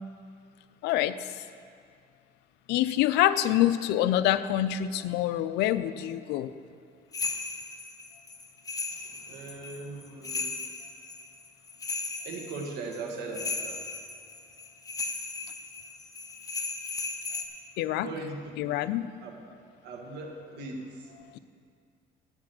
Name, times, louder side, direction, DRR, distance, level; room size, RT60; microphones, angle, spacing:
voice 1, 0.8-1.2 2.7-6.5 17.8-18.1 18.6-19.1 21.3-21.4, left 13 dB, 85° left, 14 dB, 0.5 m, -26 dB
sound 1, 7.1-17.4, left 3 dB, 20° left, 0.9 m, -36 dB
voice 2, 8.9-10.6 12.2-13.8 18.0-18.5 19.2-19.3 19.8-21.1, right 3 dB, 75° right, 2 dB, 1.7 m, -39 dB
9.5 x 7.3 x 7.5 m, 2.3 s
cardioid pair, 110°, 17 cm